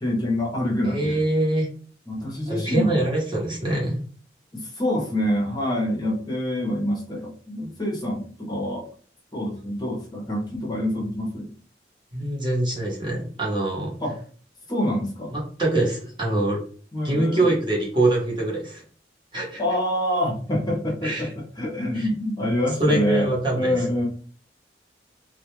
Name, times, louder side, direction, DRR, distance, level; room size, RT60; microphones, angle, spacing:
voice 1, 0.0-1.2 2.1-3.0 4.5-8.9 9.3-11.5 14.0-14.2 14.7-15.3 16.9-17.4 19.6-21.3 21.6-24.1, left 1 dB, 25° left, -2 dB, 0.7 m, -26 dB
voice 2, 0.8-1.7 2.5-4.0 12.1-13.9 15.3-16.6 17.0-18.8 19.3-19.6 21.0-21.3 21.9-22.1 22.8-23.9, right 1 dB, 25° right, -4 dB, 0.9 m, -24 dB
2.3 x 2.1 x 3.0 m, 0.43 s
head